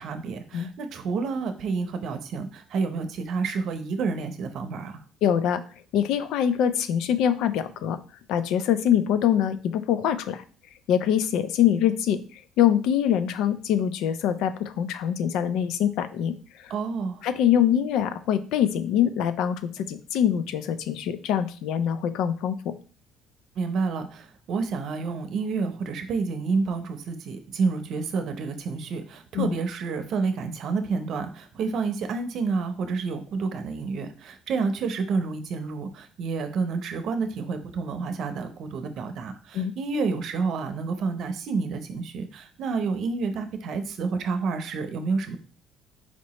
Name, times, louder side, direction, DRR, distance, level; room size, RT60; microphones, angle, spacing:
voice 1, 0.0-5.0 16.7-17.2 23.6-45.4, right 4 dB, 60° right, 8 dB, 0.7 m, -29 dB
voice 2, 5.2-5.6 5.9-8.0 8.3-10.4 10.9-16.7 17.2-22.7 29.3-29.5 39.5-39.7, left 9 dB, 75° left, 12 dB, 0.4 m, -24 dB
4.4 x 2.9 x 4.1 m, 0.40 s
cardioid pair, 95°, 0 cm